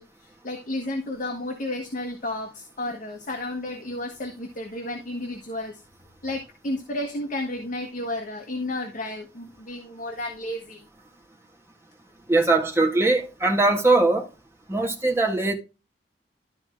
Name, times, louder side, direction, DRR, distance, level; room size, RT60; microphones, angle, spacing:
voice 1, 0.0-5.8 6.2-10.8, left 1 dB, 50° left, 1.4 m, -32 dB
voice 2, 12.3-14.3 14.7-15.5, right 2 dB, 15° right, 1.8 m, -21 dB
12.5 x 4.4 x 3.6 m
head